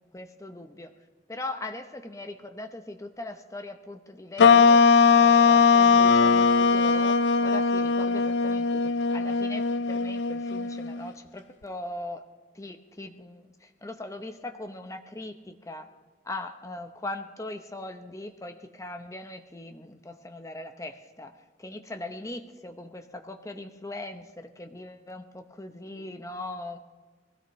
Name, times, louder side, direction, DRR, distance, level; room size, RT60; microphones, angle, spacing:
voice 1, 0.1-0.9 1.3-7.2 7.4-12.2 12.5-15.9 16.2-26.8, left 2 dB, 20° left, 7 dB, 0.8 m, -40 dB
sound 1, 4.4-11.1, left 5 dB, 80° left, 0.4 m, -20 dB
21.5 x 16.5 x 3.2 m, 1.3 s
head